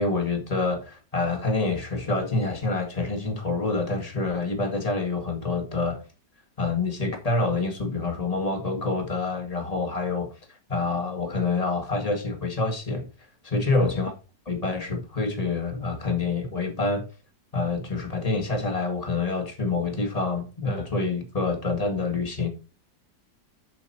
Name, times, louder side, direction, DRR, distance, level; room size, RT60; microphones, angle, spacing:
voice 1, 0.0-6.0 6.6-10.3 10.7-13.1 13.5-14.1 14.5-17.1 17.5-22.5, left 3 dB, 20° left, 1.9 m, -27 dB
7.9 x 7.0 x 4.3 m
omnidirectional pair, 1.8 m